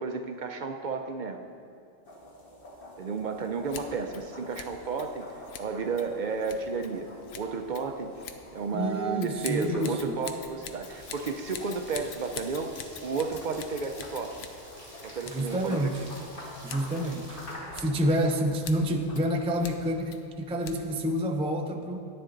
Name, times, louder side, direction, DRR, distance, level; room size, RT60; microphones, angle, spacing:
voice 1, 0.0-1.5 3.0-5.3 5.6-8.1 8.5-12.7 13.0-14.4 15.0-15.9, right 4 dB, 55° right, 6 dB, 0.6 m, -32 dB
sound 1, 2.1-19.6, left 1 dB, 60° left, 1.8 m, -48 dB
Scissors, 3.6-21.1, left 7 dB, 80° left, 0.9 m, -46 dB
voice 2, 8.7-10.2 15.3-16.0 16.6-17.4 17.8-22.0, equal, 10° right, 4 dB, 0.3 m, -28 dB
Rain, 10.8-17.5, equal, 30° left, 2.9 m, -50 dB
10.0 x 9.5 x 3.8 m, 2.5 s
omnidirectional pair, 1.0 m